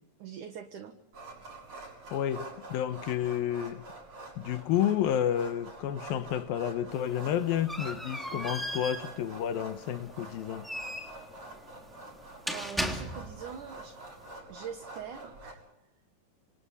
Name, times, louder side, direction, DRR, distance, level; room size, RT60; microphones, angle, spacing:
voice 1, 0.2-0.9 12.4-14.0 14.5-15.6, right 8 dB, 60° right, 2.5 m, -43 dB
sound 1, 1.1-15.5, right 2 dB, 40° right, 7.9 m, -47 dB
voice 2, 2.1-3.8 4.4-10.7, left 10 dB, 70° left, 2.6 m, -30 dB
sound 2, 6.9-13.5, equal, ahead, 2.1 m, -38 dB
27.0 x 27.0 x 4.2 m
omnidirectional pair, 4.8 m